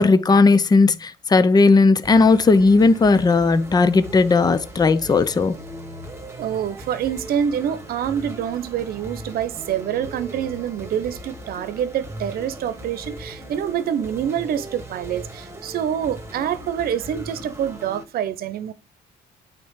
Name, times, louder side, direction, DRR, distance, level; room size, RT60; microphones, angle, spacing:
voice 1, 0.0-5.6, left 3 dB, 25° left, 0.8 m, -16 dB
sound 1, 2.0-18.0, right 1 dB, 15° right, 1.9 m, -38 dB
voice 2, 6.4-18.7, right 9 dB, 65° right, 0.9 m, -26 dB
9.1 x 4.4 x 3.8 m
cardioid pair, 110°, 17 cm